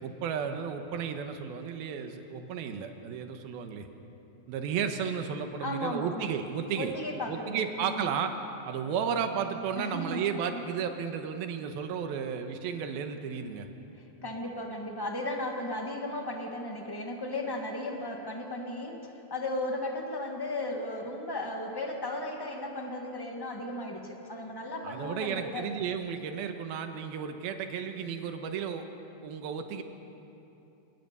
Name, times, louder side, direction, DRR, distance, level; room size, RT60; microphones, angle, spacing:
voice 1, 0.0-3.9 4.5-6.9 7.3-8.3 8.6-13.7 24.8-28.9 29.2-29.8, right 7 dB, 90° right, 6 dB, 3.1 m, -33 dB
voice 2, 5.6-6.3 6.8-8.1 9.8-10.6 13.9-25.6, left 1 dB, 15° left, 1 dB, 0.9 m, -35 dB
28.5 x 18.5 x 6.9 m, 2.9 s
omnidirectional pair, 4.2 m